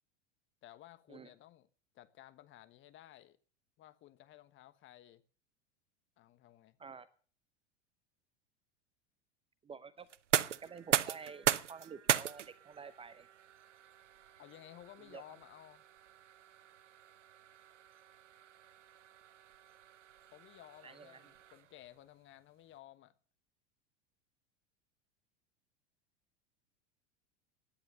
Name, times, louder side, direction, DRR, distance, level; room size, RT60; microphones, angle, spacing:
voice 1, 0.6-1.7 1.9-3.4 3.8-5.2 6.2-6.8 14.4-15.8 20.3-23.1, left 13 dB, 35° left, 1.2 m, -56 dB
voice 2, 9.6-10.1 10.5-13.3 15.0-15.2 20.8-21.2, right 6 dB, 15° right, 0.7 m, -50 dB
sound 1, 10.1-21.9, right 10 dB, 75° right, 0.6 m, -38 dB
17.0 x 10.0 x 6.6 m
figure-of-eight pair, 85°, 36 cm